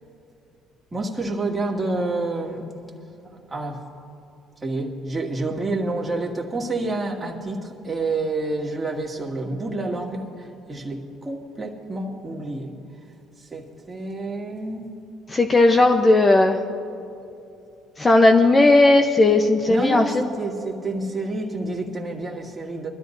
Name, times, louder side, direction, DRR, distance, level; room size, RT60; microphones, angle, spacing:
voice 1, 0.9-2.7 3.2-3.8 4.6-12.7 13.4-14.9 19.7-22.9, right 2 dB, 20° right, -1 dB, 2.1 m, -28 dB
voice 2, 15.3-16.6 18.0-20.2, left 2 dB, 25° left, 5 dB, 0.8 m, -16 dB
23.0 x 13.0 x 2.7 m, 2.7 s
cardioid pair, 95°, 0 cm